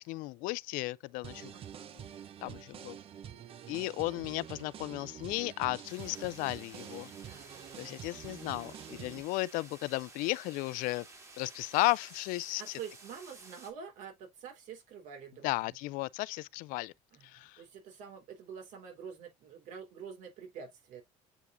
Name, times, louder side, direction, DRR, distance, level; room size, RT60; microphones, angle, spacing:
voice 1, 0.1-1.5 1.9-2.1 2.4-3.0 3.7-7.1 7.8-11.1 11.4-12.8 15.4-16.9 17.2-17.6, left 21 dB, 85° left, 0.4 m, -34 dB
sound 1, 1.2-9.2, right 9 dB, 45° right, 0.8 m, -47 dB
voice 2, 1.5-1.9 7.2-7.6 12.6-15.7 17.1-17.3 17.6-21.0, right 7 dB, 65° right, 3.9 m, -47 dB
sound 2, 5.8-13.7, right 3 dB, 20° right, 2.2 m, -53 dB
8.0 x 4.8 x 2.6 m
cardioid pair, 140°, 14 cm